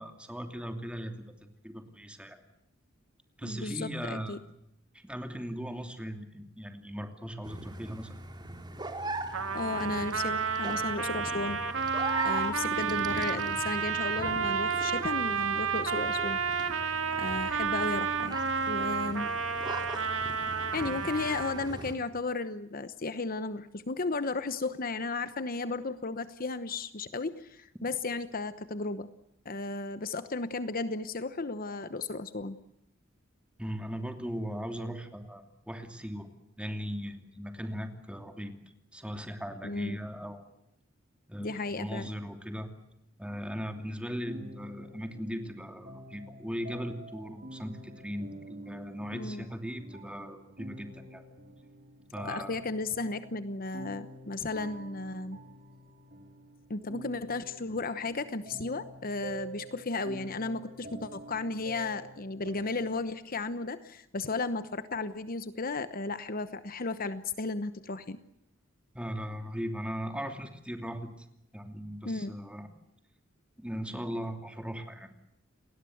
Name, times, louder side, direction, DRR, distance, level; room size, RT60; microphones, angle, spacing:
voice 1, 0.0-2.4 3.4-4.4 4.9-8.2 33.6-36.3 36.6-38.5 38.9-40.4 41.3-42.7 43.2-51.2 52.1-52.6 68.9-71.3 71.5-72.7 73.6-75.1, equal, 5° right, 5 dB, 2.8 m, -38 dB
voice 2, 3.4-4.4 9.5-11.6 12.2-16.6 17.2-18.4 18.7-19.3 20.7-29.1 29.4-32.6 39.6-40.0 41.4-42.1 49.1-49.5 52.2-55.4 56.7-68.2 72.0-72.3, left 3 dB, 45° left, 12 dB, 1.0 m, -34 dB
sound 1, 7.4-21.9, right 2 dB, 20° right, 2.9 m, -41 dB
Trumpet, 9.3-21.8, right 5 dB, 80° right, 2.1 m, -31 dB
sound 2, 43.8-63.0, right 1 dB, 45° right, 4.3 m, -48 dB
29.5 x 20.0 x 8.0 m, 0.80 s
head